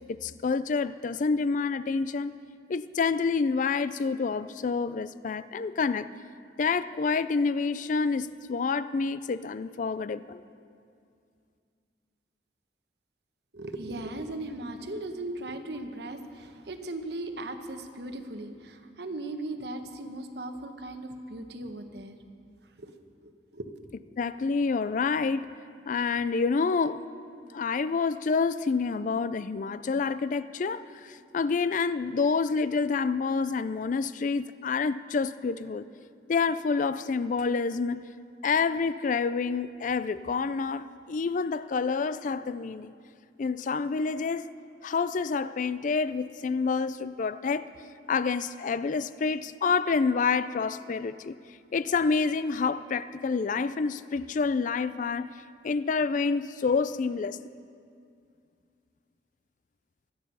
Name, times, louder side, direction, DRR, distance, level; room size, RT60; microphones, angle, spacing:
voice 1, 0.1-2.4 2.7-6.1 6.6-10.4 24.2-25.5 25.9-27.0 27.5-35.9 36.3-38.0 38.4-42.9 43.4-44.5 44.8-47.7 48.1-51.3 51.7-55.3 55.6-57.4, left 4 dB, 45° left, 0.4 m, -28 dB
voice 2, 13.5-22.2 22.8-22.9 23.2-23.7, right 2 dB, 65° right, 1.1 m, -38 dB
24.5 x 9.4 x 5.5 m
head